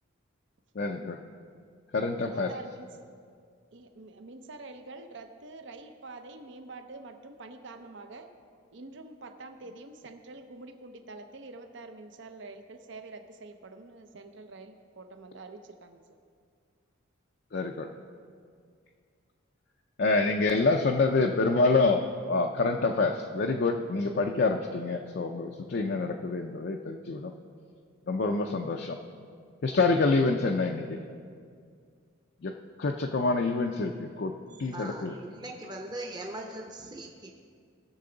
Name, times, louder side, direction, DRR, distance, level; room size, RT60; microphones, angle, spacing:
voice 1, 0.7-1.2 1.9-2.5 17.5-17.9 20.0-22.0 22.3-27.3 28.1-29.0 29.6-31.0 32.4-32.5 32.8-35.1, left 3 dB, 50° left, 2 dB, 0.5 m, -27 dB
voice 2, 2.2-2.9 3.7-8.3 8.7-16.0, right 3 dB, 55° right, 7 dB, 0.6 m, -46 dB
voice 3, 34.7-37.5, right 1 dB, 20° right, 1 dB, 0.8 m, -40 dB
19.0 x 6.8 x 3.9 m, 2.2 s
head